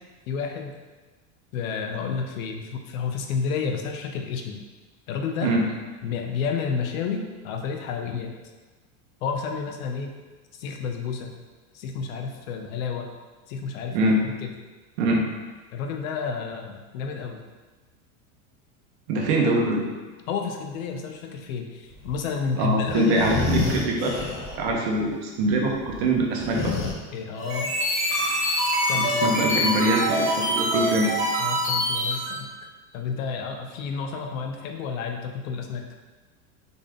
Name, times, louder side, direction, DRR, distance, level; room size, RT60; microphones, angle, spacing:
voice 1, 0.3-0.7 1.5-4.6 5.1-5.5 6.0-8.3 9.2-10.1 10.5-11.3 11.7-13.1 13.5-14.5 15.7-17.4 20.3-23.7 27.1-27.7 28.8-29.4 31.4-32.5 32.9-35.8, left 6 dB, 75° left, 3 dB, 0.8 m, -30 dB
voice 2, 13.9-14.3 15.0-15.3 19.1-19.8 22.6-24.2 24.6-26.7 29.2-31.1, right 1 dB, 50° right, -1 dB, 1.0 m, -23 dB
sound 1, 21.9-22.3 22.8-24.7 25.0-25.1 25.6-26.9, left 4 dB, 30° left, 0.5 m, -30 dB
sound 2, 27.4-32.4, equal, 5° right, 1.1 m, -25 dB
4.0 x 3.5 x 3.7 m, 1.3 s
supercardioid pair, 170°, 41 cm